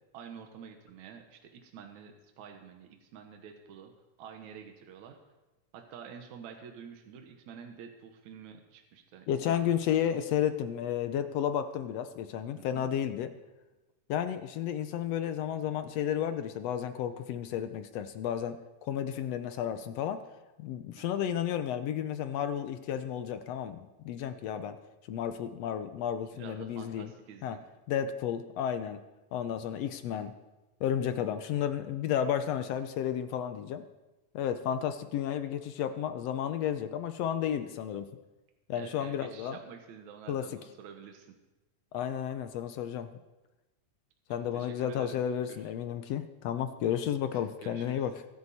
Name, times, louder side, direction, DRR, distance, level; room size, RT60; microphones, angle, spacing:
voice 1, 0.1-3.9 4.2-5.2 5.7-9.6 10.0-10.1 12.5-12.9 20.9-21.2 26.3-27.6 38.7-41.4 44.5-45.2 45.5-45.6 47.3-48.0, right 7 dB, 75° right, 4 dB, 2.5 m, -48 dB
voice 2, 9.3-13.3 14.1-20.2 20.6-24.8 25.1-27.1 27.4-27.6 27.9-29.0 29.3-30.3 30.8-33.8 34.3-38.1 38.7-39.6 40.3-40.4 41.9-43.1 44.3-48.1, left 9 dB, 75° left, 10 dB, 1.7 m, -32 dB
23.0 x 9.5 x 4.2 m, 1.1 s
omnidirectional pair, 3.4 m